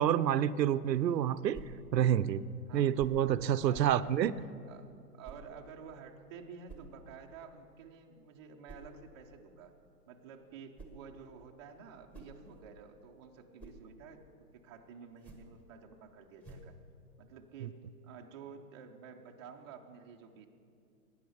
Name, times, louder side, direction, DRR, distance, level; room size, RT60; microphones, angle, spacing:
voice 1, 0.0-1.6 1.9-2.4 2.7-4.3 17.6-17.7, right 10 dB, 85° right, 15 dB, 0.6 m, -28 dB
sound 1, 1.5-1.8 3.0-3.3 3.7-4.0 5.2-5.5 6.7-7.0 8.7-8.9 10.5-11.1 11.9-12.8 13.3-13.9 15.1-15.6 16.4-16.8, right 3 dB, 5° left, 1.1 m, -51 dB
voice 2, 3.6-4.3 4.7-9.7 10.1-16.7 17.2-20.5, right 6 dB, 20° right, 1 dB, 0.5 m, -51 dB
12.0 x 9.3 x 6.9 m, 2.3 s
hypercardioid pair, 135°, 49 cm